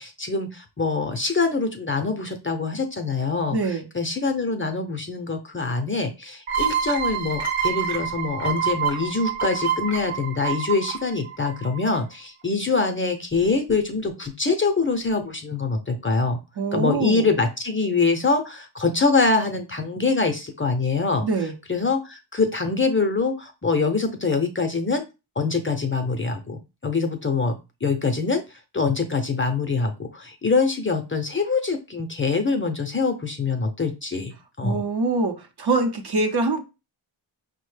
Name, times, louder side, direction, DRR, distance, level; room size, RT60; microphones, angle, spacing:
voice 1, 0.0-16.4 16.7-25.0 25.4-27.6 27.8-34.8, left 4 dB, 25° left, 6 dB, 0.6 m, -24 dB
voice 2, 3.5-3.8 16.6-17.3 21.2-21.5 34.6-36.6, right 3 dB, 50° right, 3 dB, 0.8 m, -24 dB
sound 1, 6.5-12.0, right 8 dB, 75° right, 1.0 m, -27 dB
5.3 x 2.1 x 3.2 m, 0.27 s
wide cardioid pair, 85°, 49 cm